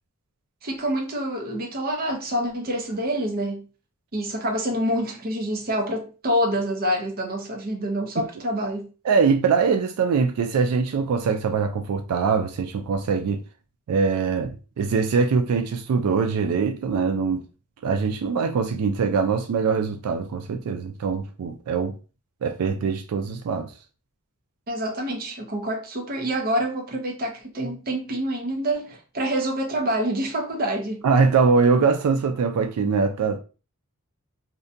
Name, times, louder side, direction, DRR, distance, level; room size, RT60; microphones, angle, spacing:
voice 1, 0.6-3.7 4.1-8.9 24.7-31.0, equal, 40° right, 0.6 m, -27 dB
voice 2, 9.0-13.4 13.9-17.4 17.8-21.9 22.4-23.7 31.0-33.4, right 5 dB, 90° right, 0.4 m, -22 dB
2.5 x 2.2 x 2.6 m
head